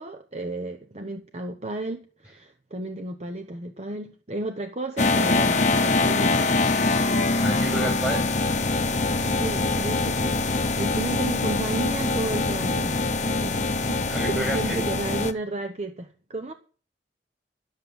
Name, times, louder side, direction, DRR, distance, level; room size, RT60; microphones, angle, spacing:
voice 1, 0.0-6.5 9.3-16.5, right 2 dB, 35° right, 0.9 m, -33 dB
sound 1, 5.0-15.3, left 3 dB, 40° left, 0.9 m, -24 dB
voice 2, 7.4-8.2 14.1-14.8, right 1 dB, 5° right, 7.4 m, -30 dB
12.5 x 7.4 x 7.9 m
head